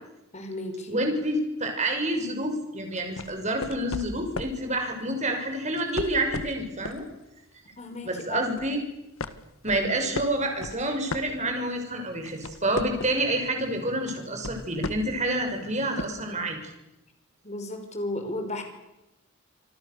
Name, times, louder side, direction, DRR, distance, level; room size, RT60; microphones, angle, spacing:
voice 1, 0.3-1.0 7.8-8.5 17.4-18.6, left 2 dB, 35° left, 5 dB, 5.4 m, -34 dB
voice 2, 0.9-7.0 8.0-8.8 9.6-16.6, right 1 dB, 35° right, 4 dB, 6.2 m, -28 dB
sound 1, 2.9-4.6 5.7-7.1 7.5-7.7 8.2-8.8 9.2-11.8 12.1-13.3 14.1-15.2 16.0-16.1, left 2 dB, 80° left, 1.7 m, -36 dB
28.0 x 25.5 x 7.0 m, 0.95 s
head